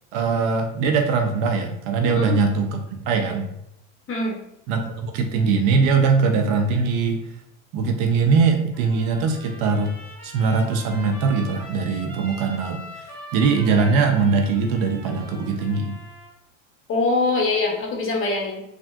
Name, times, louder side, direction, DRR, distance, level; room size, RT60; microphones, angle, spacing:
voice 1, 0.1-3.5 4.7-7.3 7.7-10.0 10.2-12.8 13.3-15.9, right 4 dB, 60° right, 5 dB, 0.6 m, -21 dB
Trumpet, 8.7-16.3, equal, 5° left, 0.9 m, -42 dB
voice 2, 16.9-18.6, left 2 dB, 35° left, 0 dB, 0.9 m, -23 dB
3.3 x 2.5 x 2.2 m, 0.79 s
supercardioid pair, 100°, 38 cm